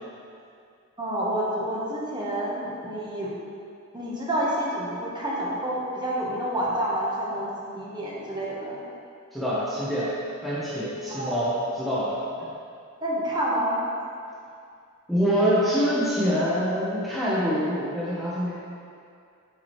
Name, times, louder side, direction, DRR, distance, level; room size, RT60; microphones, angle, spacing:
voice 1, 1.0-3.3 3.9-7.5 7.7-8.8 11.1-11.4 13.0-13.7, right 1 dB, 20° right, -6 dB, 1.1 m, -28 dB
voice 2, 9.3-10.1 10.4-12.5 15.1-18.5, equal, ahead, -10 dB, 0.8 m, -25 dB
8.3 x 4.7 x 3.1 m, 2.4 s
head